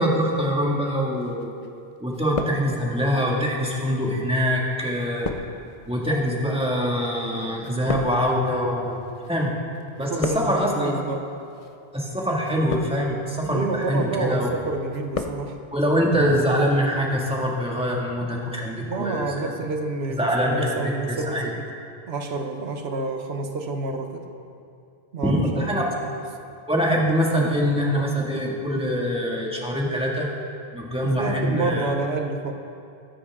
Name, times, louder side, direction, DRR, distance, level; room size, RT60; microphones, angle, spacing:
voice 1, 0.0-1.5 2.0-5.3 5.9-9.0 9.2-9.5 10.0-10.9 11.9-14.5 15.7-19.3 20.2-21.5 25.2-25.8 26.7-30.3 30.7-31.9, equal, 5° right, -3 dB, 2.0 m, -24 dB
sound 1, 1.2-1.8 2.1-3.1 3.8-9.5 9.7-10.8 11.5-11.8 12.4-13.2 13.7-14.1 14.5-15.4 15.7-15.8, left 4 dB, 40° left, 0.7 m, -34 dB
voice 2, 10.1-11.3 13.5-15.6 18.7-21.7 22.1-24.3 25.1-26.1 31.0-32.5, right 3 dB, 90° right, 4 dB, 1.2 m, -29 dB
22.0 x 9.9 x 3.6 m, 2.5 s
omnidirectional pair, 1.0 m